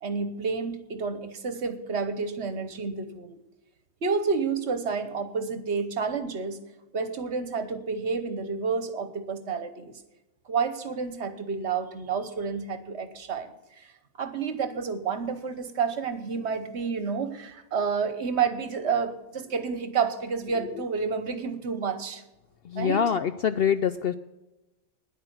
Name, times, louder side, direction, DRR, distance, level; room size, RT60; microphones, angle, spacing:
voice 1, 0.0-3.4 4.0-6.6 6.9-9.9 10.5-13.9 14.2-22.2 22.8-23.0, right 5 dB, 60° right, 11 dB, 1.3 m, -30 dB
voice 2, 22.6-24.1, left 8 dB, 60° left, 12 dB, 0.6 m, -25 dB
10.0 x 8.8 x 7.9 m, 1.0 s
omnidirectional pair, 1.4 m